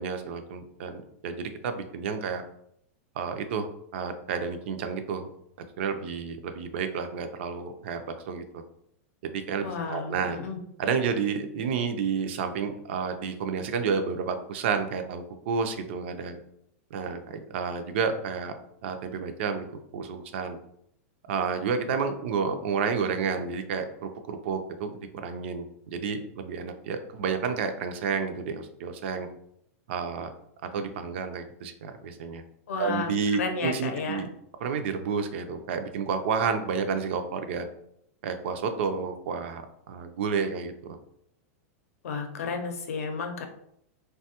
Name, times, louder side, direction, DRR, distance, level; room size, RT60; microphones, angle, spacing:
voice 1, 0.0-2.4 3.2-3.7 3.9-5.3 5.8-8.0 8.3-8.4 9.2-10.4 10.8-16.4 16.9-18.6 18.8-19.7 19.9-20.6 21.3-29.3 29.9-30.3 30.7-32.4 32.8-34.3 34.6-37.7 38.2-39.6 39.9-41.0, right 5 dB, 50° right, 7 dB, 0.4 m, -30 dB
voice 2, 9.6-10.6 32.7-34.2 42.0-43.4, left 4 dB, 75° left, 5 dB, 0.6 m, -32 dB
3.4 x 2.2 x 2.8 m, 0.72 s
supercardioid pair, 170°, 8 cm